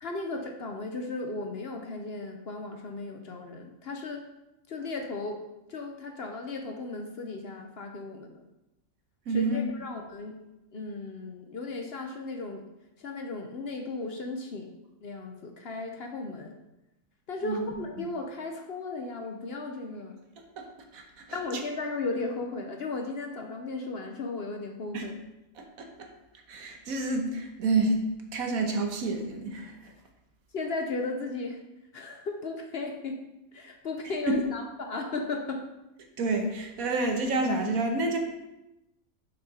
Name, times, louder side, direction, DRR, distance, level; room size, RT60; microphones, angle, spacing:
voice 1, 0.0-4.3 4.7-5.4 5.7-8.4 9.3-10.3 10.7-12.6 13.0-14.7 15.0-16.5 17.3-20.2 21.3-25.2 30.5-31.6 31.9-33.2 33.5-35.7, left 3 dB, 55° left, 3 dB, 0.8 m, -35 dB
voice 2, 9.3-9.6 17.4-17.6 18.0-18.1 20.6-20.7 20.9-21.0 21.3-21.6 24.9-25.1 25.6-25.9 26.5-29.9 34.3-34.4 36.2-38.2, right 2 dB, 75° right, 3 dB, 1.5 m, -29 dB
6.7 x 6.0 x 4.2 m, 0.94 s
omnidirectional pair, 1.5 m